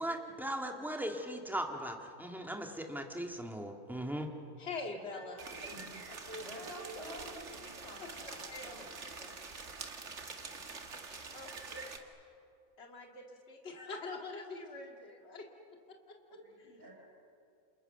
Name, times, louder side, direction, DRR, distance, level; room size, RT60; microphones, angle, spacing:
voice 1, 0.0-4.3, right 1 dB, ahead, 3 dB, 1.9 m, -38 dB
voice 2, 4.6-5.3 6.3-6.5 8.0-8.1 8.5-8.7 11.3-11.8 12.8-15.4, left 3 dB, 45° left, 2 dB, 2.5 m, -44 dB
voice 3, 5.1-7.4 16.3-17.0, right 1 dB, 35° right, -3 dB, 5.0 m, -53 dB
sound 1, 5.4-12.0, right 4 dB, 50° right, 2.0 m, -46 dB
voice 4, 6.4-9.3, equal, 25° left, -2 dB, 6.1 m, -49 dB
29.0 x 27.5 x 6.8 m, 2.5 s
omnidirectional pair, 1.5 m